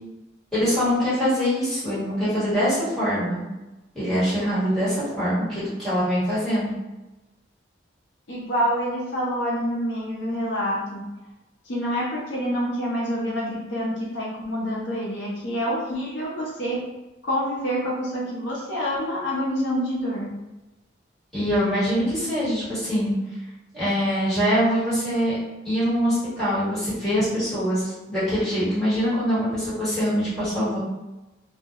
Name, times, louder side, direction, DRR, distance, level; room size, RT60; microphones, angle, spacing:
voice 1, 0.5-3.4 3.9-6.7 21.3-23.1 23.7-25.4 25.6-30.8, equal, 5° left, -12 dB, 1.3 m, -23 dB
voice 2, 8.3-11.0 11.7-16.8 17.2-20.3, equal, 65° left, -5 dB, 0.6 m, -27 dB
2.3 x 2.1 x 2.8 m, 1.1 s
head